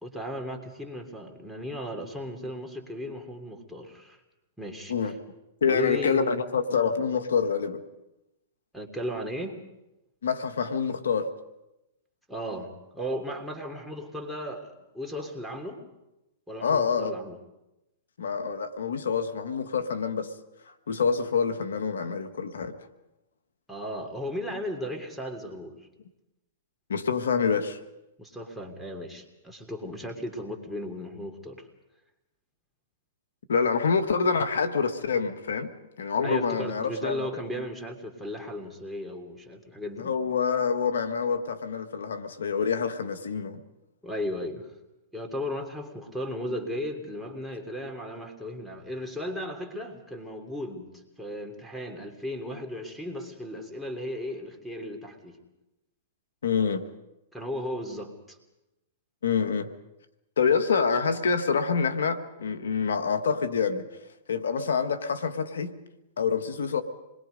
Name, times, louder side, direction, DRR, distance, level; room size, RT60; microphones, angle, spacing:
voice 1, 0.0-4.2 4.6-5.1 5.7-6.4 8.7-9.6 12.3-14.7 14.9-15.8 16.5-17.4 23.7-25.8 28.2-31.7 36.2-40.1 44.0-44.7 45.1-50.9 51.2-55.4 57.3-58.4, equal, ahead, 0 dB, 3.3 m, -35 dB
voice 2, 5.6-7.8 10.2-11.3 16.6-17.1 18.2-20.3 20.9-22.7 26.9-27.8 33.5-35.7 36.0-37.4 40.0-43.6 56.4-56.8 59.2-59.7 60.4-63.8 64.3-65.7 66.2-66.8, left 5 dB, 85° left, 9 dB, 1.6 m, -26 dB
27.5 x 21.5 x 5.3 m, 0.95 s
hypercardioid pair, 125°, 0 cm